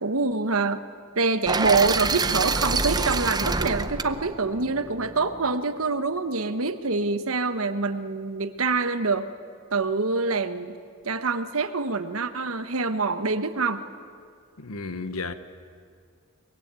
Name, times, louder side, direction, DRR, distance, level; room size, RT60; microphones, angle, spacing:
voice 1, 0.0-0.8 1.1-9.3 9.7-10.8 11.0-13.8, right 3 dB, 80° right, 1.3 m, -25 dB
sound 1, 1.5-5.5, right 4 dB, 20° right, 0.7 m, -27 dB
voice 2, 14.6-15.3, left 3 dB, 90° left, 1.1 m, -33 dB
23.0 x 22.0 x 9.1 m
head